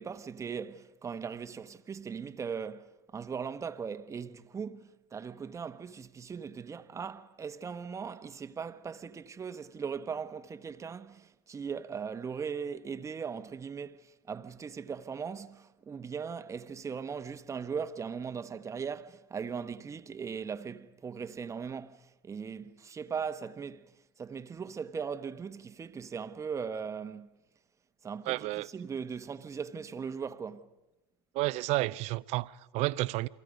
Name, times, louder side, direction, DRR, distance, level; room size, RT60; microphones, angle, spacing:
voice 1, 0.0-27.3 28.0-28.5 28.7-30.7, right 6 dB, 25° right, 1.2 m, -39 dB
voice 2, 28.3-28.7 31.3-33.3, right 19 dB, 55° right, 0.7 m, -31 dB
30.0 x 23.5 x 5.3 m
supercardioid pair, 100°, 13 cm